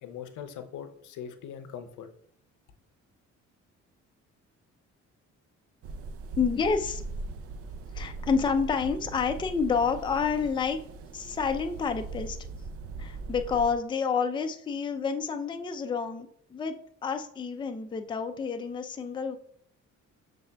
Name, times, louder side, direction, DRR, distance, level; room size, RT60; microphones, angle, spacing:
voice 1, 0.0-2.1, left 8 dB, 75° left, 8 dB, 0.6 m, -41 dB
sound 1, 5.8-13.8, right 3 dB, 50° right, 0.4 m, -40 dB
voice 2, 6.4-7.0 7.9-10.8 11.1-12.4 13.0-16.8 17.0-19.4, left 5 dB, 15° left, 6 dB, 0.4 m, -29 dB
6.9 x 3.4 x 2.2 m, 0.64 s
cardioid pair, 90°, 30 cm